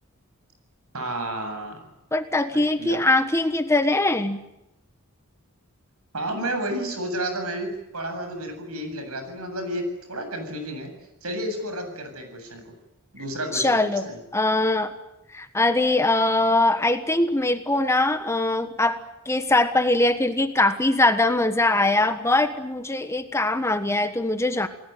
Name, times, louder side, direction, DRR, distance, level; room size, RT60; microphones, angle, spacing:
voice 1, 0.9-1.9 2.5-3.0 6.1-10.9 11.2-12.7 13.1-14.2, right 1 dB, 75° right, 6 dB, 7.7 m, -31 dB
voice 2, 2.1-4.4 13.5-14.9 15.3-19.0 19.2-24.7, left 2 dB, 10° left, 9 dB, 1.4 m, -22 dB
29.5 x 19.0 x 9.3 m, 0.89 s
head